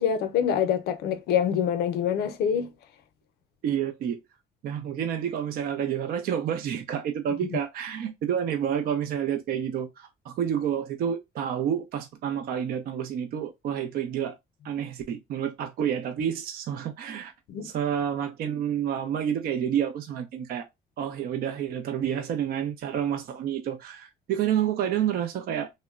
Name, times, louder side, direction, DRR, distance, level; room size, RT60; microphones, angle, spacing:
voice 1, 0.0-2.7 17.5-17.7, left 8 dB, 70° left, 0.5 m, -25 dB
voice 2, 3.6-4.2 4.6-14.3 14.6-17.3 17.6-20.7 21.0-25.7, right 9 dB, 60° right, 0.5 m, -29 dB
3.0 x 2.0 x 2.2 m
cardioid pair, 110°, 17 cm